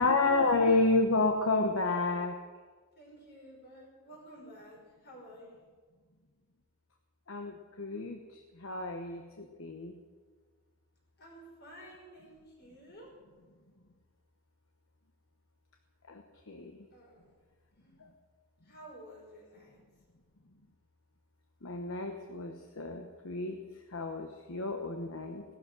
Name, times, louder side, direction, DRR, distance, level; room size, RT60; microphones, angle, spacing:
voice 1, 0.0-2.4 7.3-9.9 16.1-16.8 18.0-18.1 21.6-23.6 23.9-25.4, left 3 dB, 65° left, 4 dB, 1.2 m, -30 dB
voice 2, 3.0-5.7 11.2-13.1 16.9-17.4 17.7-18.0 18.6-19.8, equal, 50° left, -1 dB, 5.4 m, -52 dB
17.5 x 12.5 x 6.3 m, 1.5 s
head